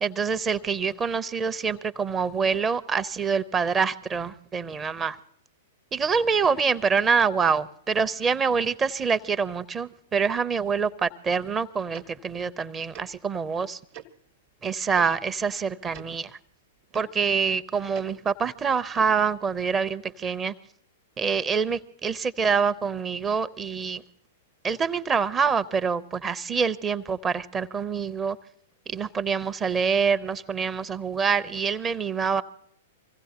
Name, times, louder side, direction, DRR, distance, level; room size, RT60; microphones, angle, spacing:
voice 1, 0.0-5.2 5.9-13.8 14.6-16.3 16.9-20.5 21.2-24.0 24.6-28.4 28.9-32.4, right 5 dB, 20° right, 13 dB, 0.6 m, -26 dB
Tick-tock, 11.9-12.1 12.9-13.1 13.9-14.1 14.9-15.1 15.9-16.1 16.9-17.0 17.9-18.1 18.9-19.1, right 9 dB, 45° right, 1.0 m, -42 dB
25.0 x 15.5 x 2.9 m, 0.68 s
figure-of-eight pair, 105°, 0 cm